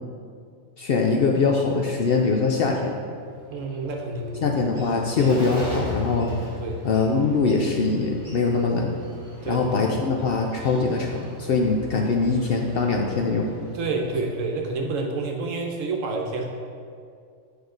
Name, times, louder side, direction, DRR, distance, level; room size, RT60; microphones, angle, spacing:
voice 1, 0.8-3.0 4.4-6.3 6.8-9.0 9.5-13.5, left 4 dB, 60° left, 1 dB, 0.6 m, -22 dB
Bird, 3.2-14.7, equal, 20° right, 2.1 m, -38 dB
voice 2, 3.5-4.5 6.6-6.8 9.4-9.6 13.7-16.5, right 3 dB, 75° right, 2 dB, 1.2 m, -28 dB
7.9 x 5.2 x 3.8 m, 2.3 s
omnidirectional pair, 1.4 m